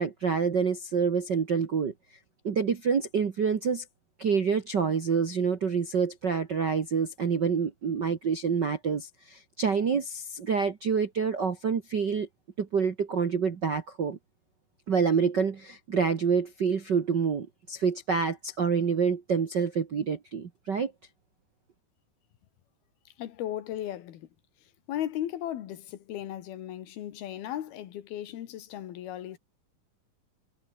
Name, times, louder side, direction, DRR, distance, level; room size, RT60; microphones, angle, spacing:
voice 1, 0.0-1.9 2.4-3.8 4.2-12.3 12.6-14.2 14.9-20.9, right 6 dB, 55° right, 1.2 m, -27 dB
voice 2, 23.1-24.3 24.6-29.4, left 12 dB, 90° left, 3.6 m, -36 dB
omnidirectional pair, 4.2 m